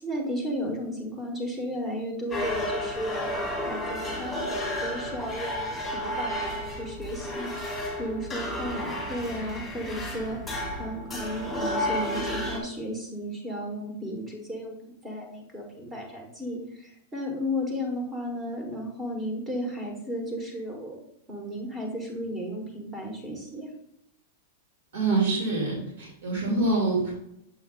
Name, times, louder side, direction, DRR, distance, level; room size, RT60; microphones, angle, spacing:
voice 1, 0.0-10.4 10.8-21.0 21.3-23.7, equal, 15° right, 2 dB, 1.3 m, -34 dB
sound 1, 2.3-12.6, left 1 dB, ahead, 2.0 m, -32 dB
voice 2, 24.9-27.1, right 3 dB, 70° right, -3 dB, 2.2 m, -25 dB
7.2 x 5.4 x 2.4 m, 0.78 s
supercardioid pair, 165°, 0 cm